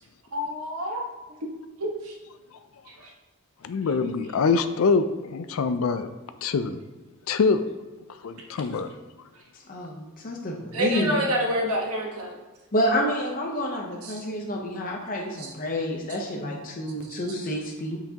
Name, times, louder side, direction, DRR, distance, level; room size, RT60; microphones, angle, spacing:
voice 1, 0.3-1.0 1.8-2.2 2.9-3.1 10.7-12.3 14.0-14.2 15.3-15.5 17.1-17.2, equal, 80° right, -1 dB, 1.3 m, -28 dB
voice 2, 3.6-6.1 6.4-6.8 7.3-7.6 8.2-8.9, left 4 dB, 70° left, 10 dB, 0.4 m, -24 dB
voice 3, 9.7-11.1 12.7-18.0, equal, 40° left, -1 dB, 0.8 m, -29 dB
6.7 x 5.8 x 2.9 m, 1.2 s
head